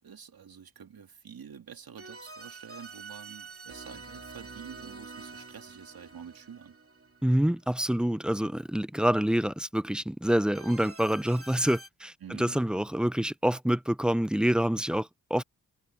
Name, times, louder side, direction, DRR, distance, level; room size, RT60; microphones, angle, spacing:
voice 1, 0.0-6.8 12.2-12.7, right 7 dB, 80° right, 2.3 m, -47 dB
sound 1, 2.0-7.9 10.5-11.9, right 3 dB, 40° right, 2.7 m, -47 dB
voice 2, 7.2-15.4, equal, 5° right, 0.5 m, -27 dB
wide cardioid pair, 75°, 35 cm